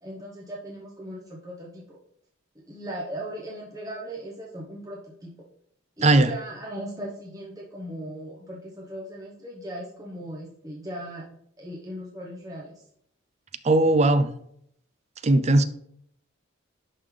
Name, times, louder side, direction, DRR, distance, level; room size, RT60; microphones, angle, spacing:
voice 1, 0.0-2.0 2.7-5.3 6.0-11.3 11.6-12.8, right 1 dB, 15° right, -4 dB, 0.9 m, -38 dB
voice 2, 13.6-14.3 15.2-15.6, right 2 dB, 35° right, 12 dB, 0.4 m, -18 dB
11.0 x 3.8 x 3.3 m, 0.70 s
head